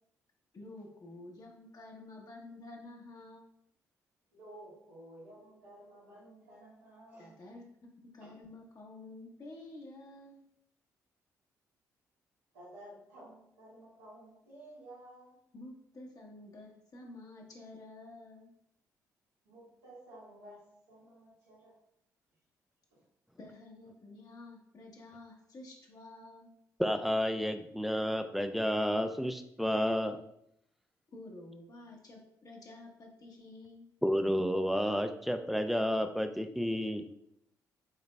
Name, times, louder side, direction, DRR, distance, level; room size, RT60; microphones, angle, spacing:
voice 1, 0.5-3.5 7.2-7.7 8.1-10.5 15.5-18.5 23.4-26.5 31.1-33.9, left 2 dB, 45° left, 0 dB, 1.1 m, -50 dB
voice 2, 4.3-7.4 8.2-8.4 12.5-15.3 19.5-21.8 22.9-23.0, right 1 dB, 90° right, -9 dB, 1.7 m, -53 dB
voice 3, 26.8-30.2 34.0-37.0, equal, ahead, 8 dB, 0.5 m, -31 dB
5.0 x 3.9 x 2.2 m, 0.74 s
hypercardioid pair, 40°, 9 cm